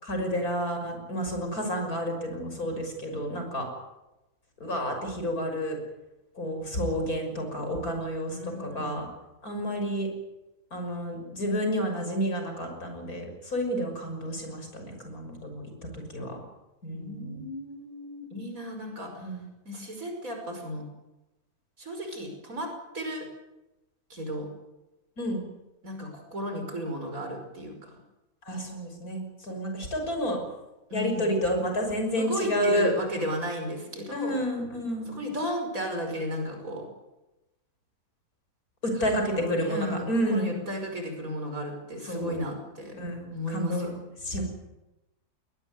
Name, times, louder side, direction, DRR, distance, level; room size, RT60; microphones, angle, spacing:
voice 1, 0.0-3.7 4.6-5.8 6.4-9.0 9.4-10.1 10.7-15.7 15.9-16.4 16.8-17.4 19.2-19.4 25.2-25.4 28.5-30.4 30.9-32.9 34.1-35.2 38.8-40.5 42.1-42.3 42.9-43.9 44.2-44.4, equal, 75° left, 4 dB, 6.6 m, -30 dB
voice 2, 8.3-9.0 16.9-19.4 19.7-20.8 21.8-22.7 22.9-23.3 24.1-24.5 25.8-27.9 30.9-31.4 32.2-34.4 35.1-36.9 38.9-39.1 39.4-42.9 43.3-43.9 44.3-44.4, equal, 65° right, 4 dB, 5.9 m, -34 dB
21.0 x 19.5 x 9.5 m, 0.99 s
omnidirectional pair, 1.6 m